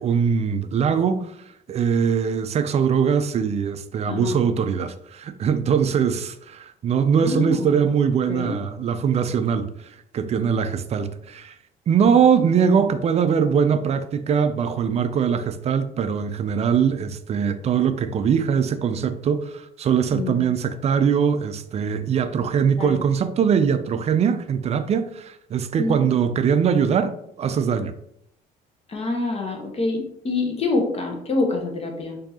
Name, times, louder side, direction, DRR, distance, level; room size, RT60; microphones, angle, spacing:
voice 1, 0.0-1.4 1.7-11.5 11.9-27.9, right 7 dB, 40° right, 0.4 m, -22 dB
voice 2, 4.1-4.4 7.2-7.7 8.3-8.5 20.1-20.4 22.8-23.0 25.8-26.0 28.9-32.2, left 3 dB, 35° left, 1.0 m, -26 dB
4.4 x 2.7 x 2.8 m
cardioid pair, 110°, 17 cm